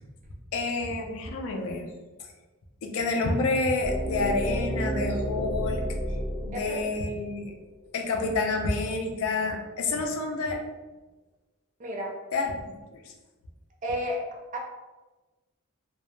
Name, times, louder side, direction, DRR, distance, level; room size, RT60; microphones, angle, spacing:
voice 1, 0.5-1.9 2.8-5.8 6.4-7.5 7.9-10.6 12.3-12.5, left 3 dB, 65° left, 3 dB, 0.4 m, -28 dB
sound 1, 3.8-7.7, equal, 5° left, 0.7 m, -31 dB
voice 2, 6.5-6.9 11.8-12.2 13.8-14.2 14.5-14.6, equal, 35° right, 0 dB, 0.4 m, -31 dB
2.1 x 2.1 x 3.0 m, 1.2 s
head